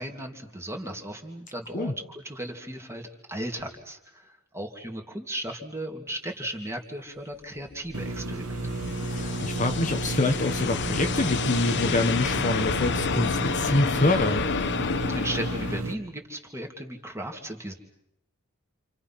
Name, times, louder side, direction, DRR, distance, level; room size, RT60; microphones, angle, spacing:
voice 1, 0.0-8.8 15.1-17.7, right 1 dB, 10° right, 3 dB, 2.7 m, -36 dB
sound 1, 7.6-15.8, left 5 dB, 55° left, 1.0 m, -30 dB
sound 2, 7.9-15.9, right 2 dB, 75° right, 2.3 m, -32 dB
voice 2, 9.1-14.5, left 2 dB, 35° left, 5 dB, 1.3 m, -25 dB
28.5 x 28.0 x 5.9 m, 0.81 s
head